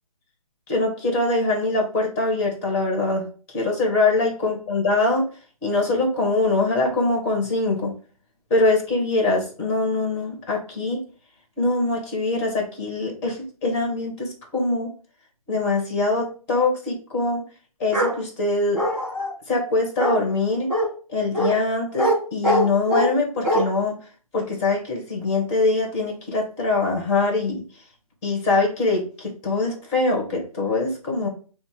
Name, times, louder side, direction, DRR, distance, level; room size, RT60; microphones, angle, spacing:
voice 1, 0.7-5.2 5.6-7.9 8.5-11.0 11.6-14.9 15.5-17.4 17.8-18.8 19.5-20.7 21.1-24.0 24.3-27.6 28.2-31.3, left 2 dB, 20° left, 0 dB, 1.6 m, -23 dB
Bark, 17.9-18.2 18.8-19.3 20.0-20.2 20.7-20.9 21.3-21.5 22.0-22.2 22.4-23.1 23.4-23.6, equal, ahead, 1.3 m, -21 dB
5.3 x 2.2 x 4.7 m, 0.40 s
hypercardioid pair, 155°, 19 cm